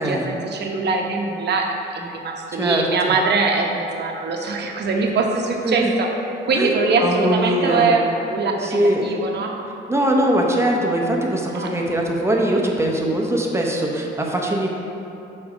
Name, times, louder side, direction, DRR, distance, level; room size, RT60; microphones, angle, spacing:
voice 1, 0.0-6.1 6.4-9.5 11.5-11.7, right 3 dB, 60° right, 1 dB, 1.0 m, -22 dB
voice 2, 2.5-2.9 5.6-5.9 6.5-6.7 7.0-7.9 8.6-9.0 9.9-14.7, right 1 dB, 15° right, -1 dB, 1.0 m, -21 dB
7.0 x 4.3 x 5.0 m, 3.0 s
cardioid pair, 90°, 20 cm